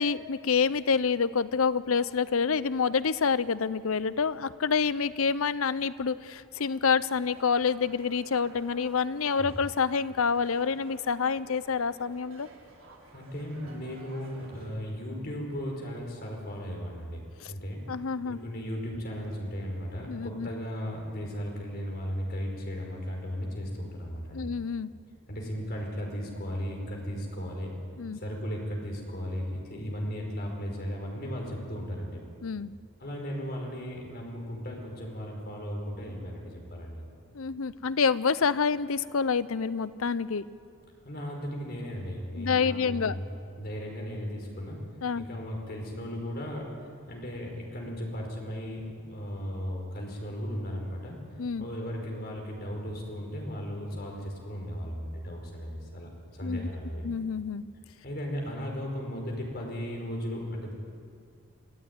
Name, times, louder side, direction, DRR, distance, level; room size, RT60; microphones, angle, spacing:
voice 1, 0.0-12.5 17.4-17.5 17.9-18.4 20.1-20.5 24.3-24.9 28.0-28.2 32.4-32.7 37.3-40.4 42.4-43.2 45.0-45.2 51.4-51.7 56.4-56.7 57.0-57.7, left 5 dB, 75° left, 16 dB, 0.6 m, -27 dB
sound 1, 6.5-14.8, right 2 dB, 65° right, 4.0 m, -54 dB
voice 2, 13.1-17.8 18.2-24.5 25.3-27.7 28.1-32.2 33.0-36.9 41.0-43.3 43.6-44.8 45.1-51.1 51.6-57.0 58.0-60.7, equal, 45° left, 0 dB, 5.0 m, -36 dB
26.0 x 15.0 x 9.7 m, 2.4 s
head